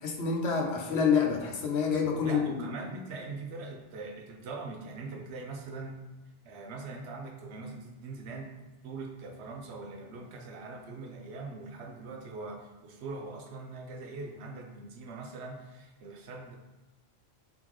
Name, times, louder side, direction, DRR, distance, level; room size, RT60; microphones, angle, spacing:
voice 1, 0.0-2.6, left 6 dB, 90° left, 1 dB, 1.0 m, -27 dB
voice 2, 2.2-6.0 6.4-8.6 8.8-16.6, right 3 dB, 85° right, 2 dB, 1.0 m, -42 dB
3.9 x 3.8 x 3.0 m, 1.1 s
omnidirectional pair, 1.1 m